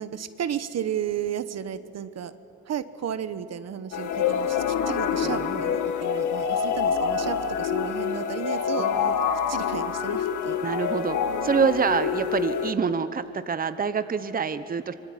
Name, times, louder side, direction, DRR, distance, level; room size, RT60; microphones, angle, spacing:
voice 1, 0.0-2.3 2.7-9.1 9.5-10.6, right 9 dB, 60° right, 12 dB, 1.2 m, -33 dB
sound 1, 3.9-12.7, left 7 dB, 80° left, 1.8 m, -26 dB
voice 2, 5.2-5.6 8.8-9.1 10.6-14.9, right 5 dB, 30° right, 11 dB, 1.0 m, -26 dB
25.5 x 22.0 x 9.3 m, 2.9 s
cardioid pair, 90°, 30 cm